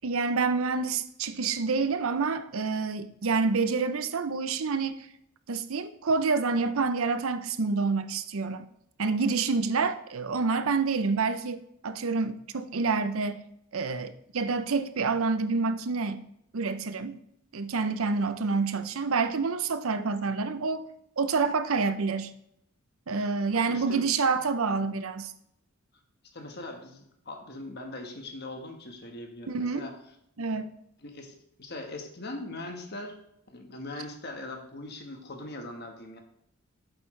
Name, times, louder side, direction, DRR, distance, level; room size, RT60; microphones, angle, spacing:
voice 1, 0.0-5.1 5.5-8.7 9.0-13.4 13.7-16.2 16.5-17.2 17.5-20.8 21.2-22.3 23.1-25.3 29.5-29.8 30.4-30.7, right 4 dB, 75° right, 0.6 m, -28 dB
voice 2, 23.5-24.0 26.3-29.9 31.0-33.2 33.5-36.2, left 2 dB, 45° left, 1.3 m, -41 dB
8.5 x 7.6 x 3.2 m
head